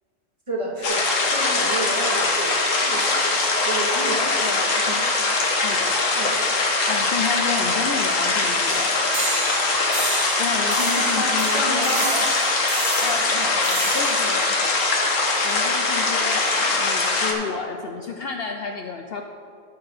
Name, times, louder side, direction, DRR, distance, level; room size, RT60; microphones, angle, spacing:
voice 1, 0.5-2.5 2.8-4.5 4.9-5.1 6.1-6.3 11.0-12.2, right 1 dB, 25° right, -3 dB, 1.6 m, -30 dB
sound 1, 0.8-17.3, left 3 dB, 85° left, 1.6 m, -22 dB
voice 2, 4.4-4.9 5.6-6.0 6.9-8.9 10.4-12.2 13.0-15.0 15.4-19.2, left 6 dB, 60° left, 4 dB, 0.7 m, -31 dB
sound 2, 8.7-15.7, right 4 dB, 85° right, 1.6 m, -32 dB
13.5 x 4.6 x 6.4 m, 2.4 s
omnidirectional pair, 1.3 m